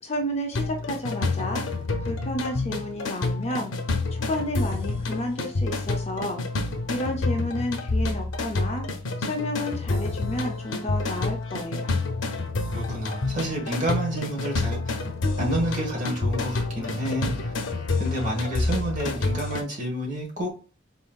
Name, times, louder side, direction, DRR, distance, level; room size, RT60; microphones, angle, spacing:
voice 1, 0.0-1.6 2.0-3.7 4.1-6.4 6.9-8.8 9.2-11.9, left 1 dB, 30° left, 0.5 m, -31 dB
sound 1, 0.5-19.6, left 3 dB, 80° left, 0.6 m, -28 dB
voice 2, 12.7-15.0 15.4-17.5 18.0-20.5, right 1 dB, 40° right, 1.3 m, -29 dB
4.0 x 3.7 x 2.3 m
head